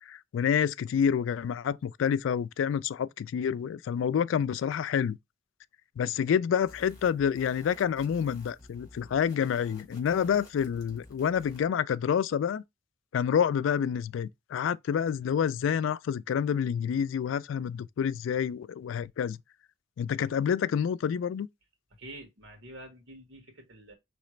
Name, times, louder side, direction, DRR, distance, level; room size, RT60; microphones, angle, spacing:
voice 1, 0.1-5.2 6.0-12.6 13.1-19.4 20.0-21.5, left 8 dB, 80° left, 0.3 m, -28 dB
sound 1, 6.6-11.7, left 1 dB, 20° left, 2.0 m, -53 dB
voice 2, 22.0-23.9, right 1 dB, 85° right, 1.7 m, -47 dB
5.0 x 3.2 x 3.1 m
head